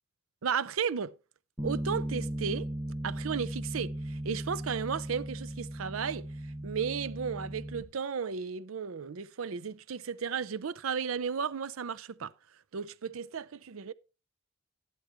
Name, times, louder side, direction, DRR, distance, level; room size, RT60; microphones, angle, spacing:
voice 1, 0.4-1.1 1.6-2.7 3.0-6.3 6.6-12.3 12.7-13.9, right 6 dB, 85° right, 0.5 m, -34 dB
Bass guitar, 1.6-7.8, right 1 dB, 10° right, 1.6 m, -37 dB
11.5 x 11.0 x 3.0 m
head